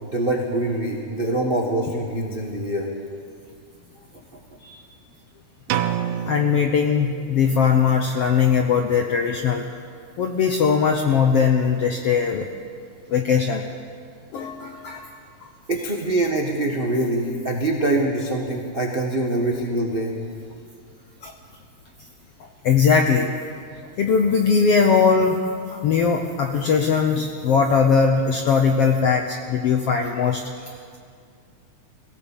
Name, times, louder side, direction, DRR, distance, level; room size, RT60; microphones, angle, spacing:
voice 1, 0.0-2.9 15.7-20.2, right 1 dB, 45° right, 0 dB, 0.7 m, -24 dB
sound 1, 5.7-7.6, right 10 dB, 85° right, 2.5 m, -28 dB
voice 2, 6.3-9.7 10.2-12.5 13.1-13.6 14.3-15.1 15.4-15.5 21.2-21.3 22.4-23.3 24.0-25.4 25.7-30.4, left 6 dB, 70° left, 4 dB, 1.4 m, -20 dB
22.5 x 17.0 x 7.4 m, 2.2 s
omnidirectional pair, 3.9 m